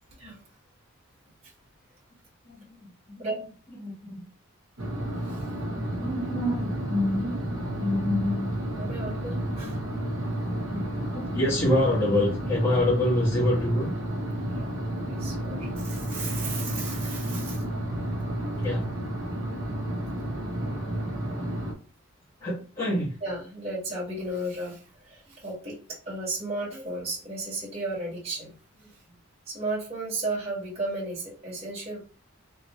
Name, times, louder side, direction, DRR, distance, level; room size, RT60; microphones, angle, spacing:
voice 1, 2.4-3.4 3.7-4.2 5.6-7.4 7.8-8.9 10.7-13.9 15.1-15.3 18.6-18.9 22.4-23.2, left 1 dB, 25° left, -8 dB, 1.3 m, -27 dB
sound 1, 4.8-21.7, right 1 dB, 65° right, 1.1 m, -31 dB
voice 2, 8.8-9.8 14.5-14.7 15.1-17.6 23.2-24.8 25.1-25.7 26.0-28.5 28.8-28.9 29.5-32.0, right 2 dB, 30° right, -6 dB, 1.7 m, -34 dB
3.7 x 2.9 x 3.1 m, 0.36 s
head